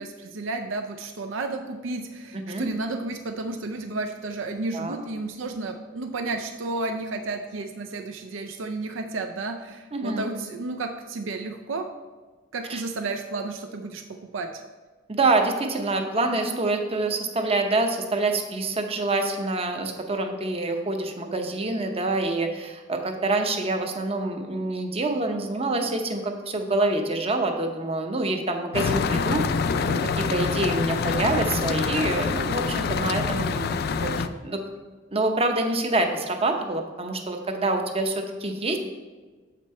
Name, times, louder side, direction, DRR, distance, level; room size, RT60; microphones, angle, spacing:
voice 1, 0.0-11.9 12.5-14.6, right 3 dB, 80° right, 6 dB, 0.5 m, -32 dB
voice 2, 2.3-2.7 4.7-5.0 9.9-10.3 12.7-12.8 15.1-29.4 29.9-33.7 34.0-34.6 35.1-38.8, right 2 dB, 30° right, 5 dB, 0.8 m, -26 dB
sound 1, 28.7-34.3, left 5 dB, 55° left, 0.4 m, -26 dB
7.5 x 5.2 x 4.3 m, 1.4 s
head